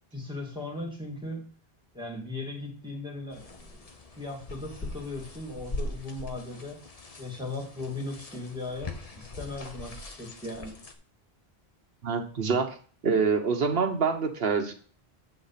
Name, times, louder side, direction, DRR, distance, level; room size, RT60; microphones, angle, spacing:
voice 1, 0.1-1.5 1.9-3.8 4.1-6.8 7.2-10.8, left 2 dB, 5° right, -2 dB, 2.6 m, -38 dB
sound 1, 3.3-10.9, left 2 dB, 40° left, 1.0 m, -41 dB
voice 2, 12.0-12.8 13.0-14.7, right 5 dB, 65° right, 5 dB, 1.3 m, -26 dB
8.5 x 4.2 x 5.7 m, 0.43 s
omnidirectional pair, 1.1 m